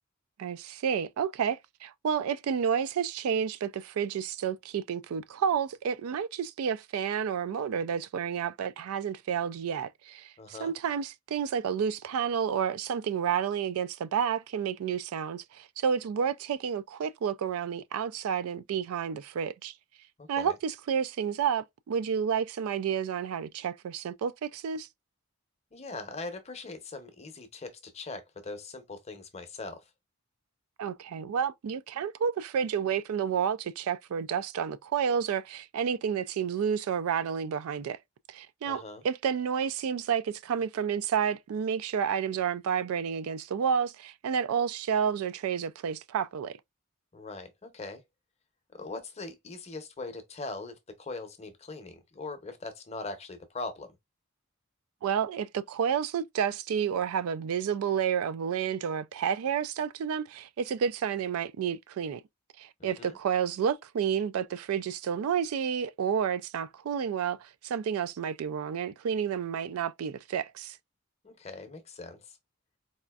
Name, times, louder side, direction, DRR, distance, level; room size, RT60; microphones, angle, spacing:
voice 1, 0.4-19.7 20.3-24.9 30.8-38.0 38.3-46.6 55.0-62.2 62.6-70.8, right 7 dB, 85° right, 0.3 m, -30 dB
voice 2, 10.4-10.7 20.2-20.5 25.7-29.8 38.7-39.0 47.1-48.0 48.7-54.0 62.8-63.2 71.2-72.4, left 3 dB, 30° left, 0.6 m, -41 dB
4.1 x 2.5 x 2.3 m
head